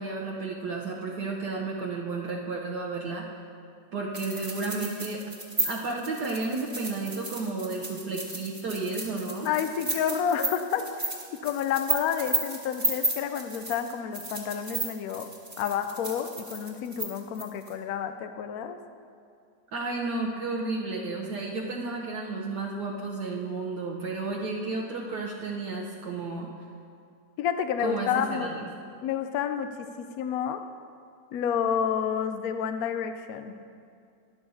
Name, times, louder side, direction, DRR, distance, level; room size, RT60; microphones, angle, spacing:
voice 1, 0.0-3.3 3.9-5.2 5.6-9.5 19.7-26.5 27.8-28.7, right 3 dB, 70° right, -2 dB, 1.4 m, -32 dB
sound 1, 4.1-17.7, right 2 dB, 20° right, 1.4 m, -33 dB
voice 2, 9.4-10.8 11.4-15.3 15.6-18.8 27.4-28.5 29.0-29.7 30.0-30.6 31.3-33.5, left 8 dB, 70° left, 8 dB, 0.9 m, -29 dB
12.5 x 11.5 x 2.7 m, 2.4 s
omnidirectional pair, 1.9 m